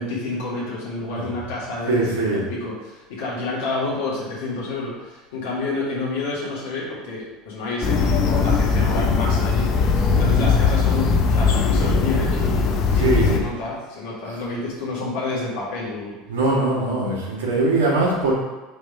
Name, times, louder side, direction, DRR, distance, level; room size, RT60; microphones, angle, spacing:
voice 1, 0.0-12.5 12.9-16.2, left 3 dB, 75° left, -6 dB, 1.9 m, -29 dB
voice 2, 1.9-2.4 12.9-13.5 16.3-18.3, right 2 dB, 85° right, -4 dB, 2.0 m, -21 dB
sound 1, 7.8-13.4, left 4 dB, 50° left, 0.8 m, -19 dB
5.6 x 3.5 x 5.5 m, 1.1 s
hypercardioid pair, 90°, 0 cm